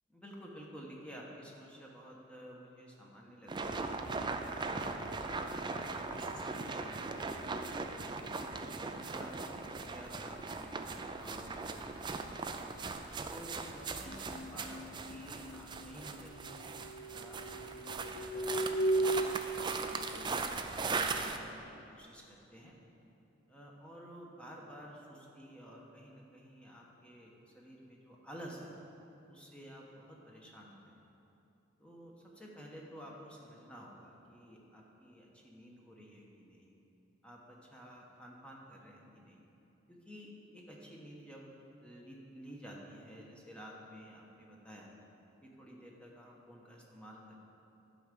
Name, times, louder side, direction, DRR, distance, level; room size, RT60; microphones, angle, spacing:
voice 1, 0.1-7.0 7.4-8.6 9.1-12.6 13.2-16.6 17.1-22.7 23.5-28.7 29.3-31.0 31.8-36.7 37.2-39.4 39.9-41.5 41.8-44.9 45.4-47.4, equal, 5° left, -3 dB, 1.2 m, -52 dB
sound 1, 3.5-21.4, right 4 dB, 25° right, 0.4 m, -39 dB
sound 2, 14.1-19.3, right 1 dB, 50° left, 0.4 m, -36 dB
11.5 x 5.0 x 6.8 m, 2.9 s
head